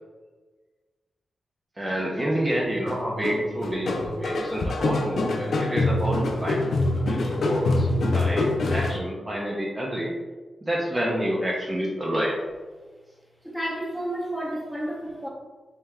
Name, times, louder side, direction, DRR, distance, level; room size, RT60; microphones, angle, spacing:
voice 1, 1.8-6.7 7.1-10.1 10.6-12.3, equal, 20° right, -4 dB, 0.6 m, -28 dB
sound 1, 2.9-9.0, left 2 dB, 70° left, 0.4 m, -25 dB
voice 2, 13.4-15.3, right 1 dB, ahead, -3 dB, 0.8 m, -31 dB
3.4 x 2.7 x 3.3 m, 1.3 s
wide cardioid pair, 90°, 0 cm